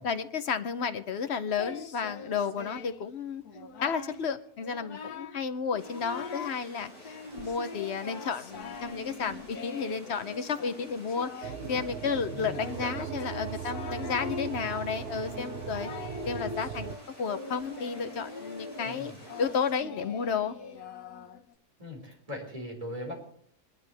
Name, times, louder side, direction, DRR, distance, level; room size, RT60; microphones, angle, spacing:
voice 1, 0.0-3.4 3.8-15.9 16.3-19.1 19.4-20.6, left 6 dB, 55° left, 10 dB, 0.8 m, -32 dB
Singing, 1.6-3.1 3.4-4.2 4.6-5.4 5.7-6.6 7.0-21.5, left 4 dB, 90° left, 1.7 m, -42 dB
sound 1, 5.8-19.7, equal, 40° right, 7.0 m, -51 dB
sound 2, 11.4-17.0, right 8 dB, 55° right, 0.8 m, -38 dB
voice 2, 12.3-13.1 18.8-19.2 21.8-23.1, left 1 dB, 20° right, 0 dB, 4.6 m, -39 dB
22.0 x 12.0 x 3.4 m, 0.64 s
omnidirectional pair, 1.6 m